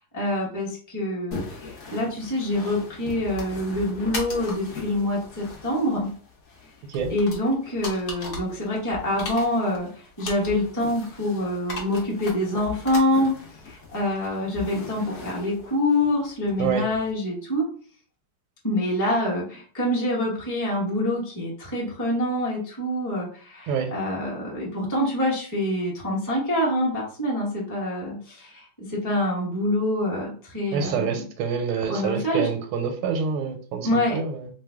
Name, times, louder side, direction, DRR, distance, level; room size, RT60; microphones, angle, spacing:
voice 1, 0.1-6.1 7.1-13.3 13.6-17.7 18.6-28.6 28.9-31.1 31.9-32.5 33.8-34.2, left 1 dB, 15° left, -4 dB, 0.6 m, -26 dB
sound 1, 1.3-17.1, left 4 dB, 55° left, 0.8 m, -39 dB
voice 2, 30.7-34.5, right 6 dB, 85° right, 6 dB, 1.5 m, -27 dB
3.3 x 2.2 x 3.4 m, 0.43 s
omnidirectional pair, 2.2 m